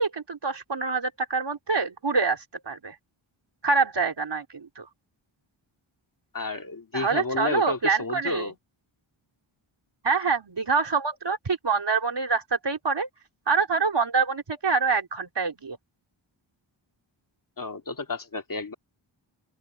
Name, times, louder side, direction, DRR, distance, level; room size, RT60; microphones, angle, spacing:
voice 1, 0.0-3.0 3.6-4.9 6.9-8.5 10.0-13.1 13.5-15.8, right 4 dB, 60° right, 4.2 m, -26 dB
voice 2, 6.3-8.5 17.6-18.7, left 3 dB, 40° left, 2.3 m, -31 dB
open air
wide cardioid pair, 70°, 48 cm